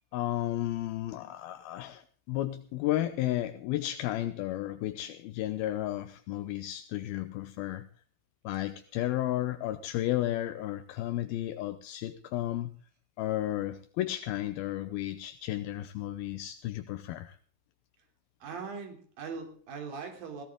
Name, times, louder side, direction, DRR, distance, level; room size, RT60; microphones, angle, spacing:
voice 1, 0.1-7.9 8.4-12.7 13.2-17.4, left 14 dB, 80° left, 2.6 m, -33 dB
voice 2, 18.4-20.4, right 5 dB, 65° right, 4.6 m, -40 dB
16.5 x 16.5 x 3.6 m
omnidirectional pair, 4.4 m